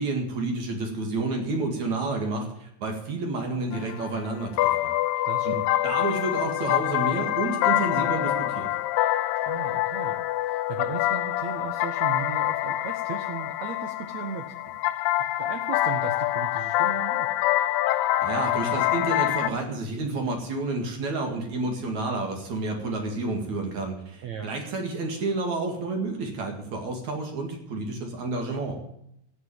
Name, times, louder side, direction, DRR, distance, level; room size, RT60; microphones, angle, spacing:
voice 1, 0.0-4.9 5.5-5.6 5.8-8.7 18.2-28.8, right 3 dB, 50° right, 2 dB, 3.0 m, -30 dB
sound 1, 3.7-19.5, left 14 dB, 85° left, 2.7 m, -26 dB
voice 2, 5.2-5.7 9.5-14.5 15.2-17.3 24.2-24.5, right 7 dB, 80° right, 6 dB, 1.5 m, -37 dB
13.0 x 8.5 x 8.8 m, 0.75 s
omnidirectional pair, 4.6 m